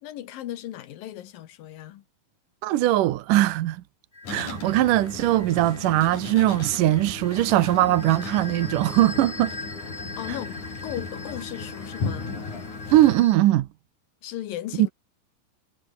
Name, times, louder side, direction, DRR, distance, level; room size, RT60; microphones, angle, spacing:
voice 1, 0.0-2.0 10.2-12.3 14.2-14.9, left 12 dB, 85° left, 3.1 m, -36 dB
voice 2, 2.6-3.8 4.3-9.5 12.9-13.7, right 15 dB, 75° right, 2.5 m, -20 dB
sound 1, 4.1-13.3, left 3 dB, 15° left, 1.9 m, -42 dB
sound 2, 4.2-13.2, left 4 dB, 60° left, 7.6 m, -36 dB
omnidirectional pair, 3.9 m